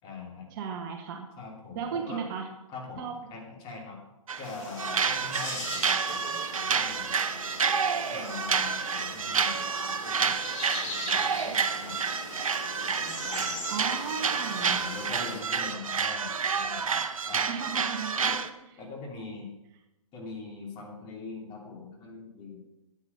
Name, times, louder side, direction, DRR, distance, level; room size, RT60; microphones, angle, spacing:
voice 1, 0.0-0.5 1.4-2.2 2.7-4.0 4.4-7.2 8.1-10.5 10.8-12.0 12.8-13.5 14.5-17.0 17.2-17.4 18.2-19.5 20.1-22.6, left 4 dB, 30° left, -1 dB, 2.9 m, -43 dB
voice 2, 0.6-1.3 1.7-2.5 3.0-3.2 13.7-14.8 17.5-18.1, right 6 dB, 35° right, 3 dB, 1.2 m, -35 dB
sound 1, 4.3-4.5 4.8-18.5, right 6 dB, 70° right, 0.8 m, -29 dB
sound 2, 4.4-15.4, left 2 dB, 60° left, 4.4 m, -41 dB
8.9 x 8.8 x 5.4 m, 0.93 s
figure-of-eight pair, 125°, 18 cm